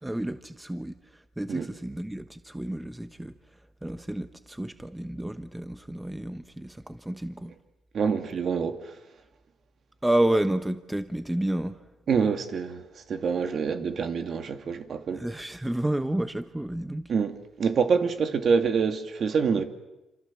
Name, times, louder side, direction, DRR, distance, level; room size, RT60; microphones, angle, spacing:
voice 1, 0.0-7.5 10.0-11.9 15.1-17.1, right 1 dB, 10° right, 1.2 m, -30 dB
voice 2, 7.9-9.0 12.1-15.2 17.1-19.6, right 6 dB, 50° right, 2.7 m, -26 dB
27.5 x 27.0 x 7.6 m
cardioid pair, 95°, 0 cm